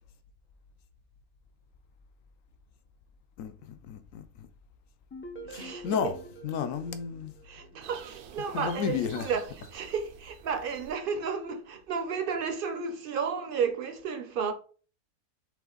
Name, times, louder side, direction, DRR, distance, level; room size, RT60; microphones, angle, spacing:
voice 1, 3.9-4.2 5.5-6.1 6.4-7.3 8.5-9.3, left 7 dB, 70° left, 0.9 m, -32 dB
sound 1, 5.1-8.0, right 1 dB, 15° left, 0.4 m, -46 dB
voice 2, 5.4-6.1 7.5-14.5, right 6 dB, 50° right, 0.7 m, -33 dB
sound 2, 7.8-11.3, right 6 dB, 80° right, 1.1 m, -49 dB
5.8 x 2.4 x 3.8 m
omnidirectional pair, 1.5 m